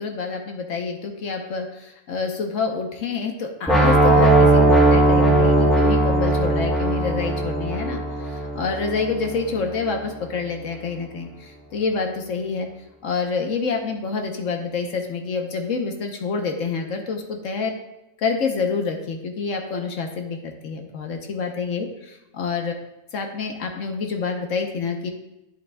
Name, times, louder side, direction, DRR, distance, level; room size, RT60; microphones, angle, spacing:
voice 1, 0.0-12.7 13.0-17.7 18.2-22.7 23.1-25.1, left 4 dB, 70° left, 4 dB, 1.3 m, -27 dB
sound 1, 3.7-9.6, right 2 dB, ahead, 0.8 m, -18 dB
11.0 x 7.3 x 2.3 m, 0.96 s
omnidirectional pair, 1.4 m